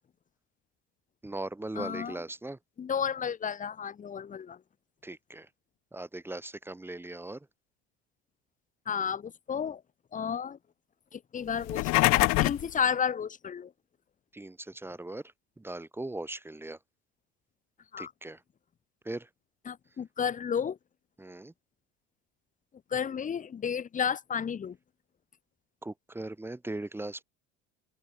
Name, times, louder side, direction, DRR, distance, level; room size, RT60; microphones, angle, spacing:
voice 1, 1.2-2.6 5.0-5.5 5.9-7.5 14.3-15.2 15.6-16.8 18.0-18.4 19.0-19.3 21.2-21.5 25.8-27.2, right 2 dB, 10° right, 3.3 m, -39 dB
voice 2, 1.8-2.2 2.8-4.6 8.9-9.8 10.1-10.6 11.1-13.7 17.9-18.1 19.7-20.8 22.9-24.8, left 7 dB, 25° left, 1.8 m, -32 dB
sound 1, 11.6-12.7, left 23 dB, 60° left, 0.8 m, -24 dB
open air
cardioid pair, 130°, 29 cm